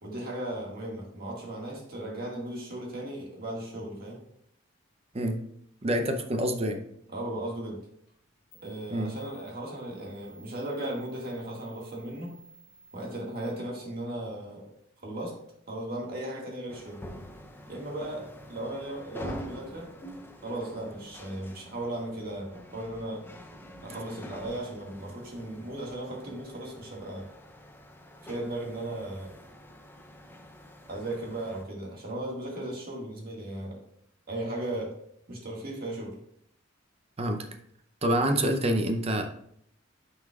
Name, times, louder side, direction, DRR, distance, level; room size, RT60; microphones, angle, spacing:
voice 1, 0.0-4.2 7.1-7.8 8.6-12.3 12.9-14.6 15.0-15.3 15.7-17.0 17.7-19.9 20.4-23.2 23.8-27.3 28.2-29.3 30.9-33.8 34.3-34.9 35.3-36.1, right 1 dB, 50° right, -2 dB, 1.9 m, -36 dB
voice 2, 5.8-6.8 8.9-9.1 37.2-37.4 38.0-39.3, right 1 dB, 30° right, 6 dB, 0.6 m, -26 dB
sound 1, 8.1-8.2 8.5-13.5, right 2 dB, 35° left, 2.6 m, -55 dB
sound 2, 16.7-31.6, equal, 10° left, 0.6 m, -46 dB
9.3 x 5.5 x 2.4 m, 0.71 s
head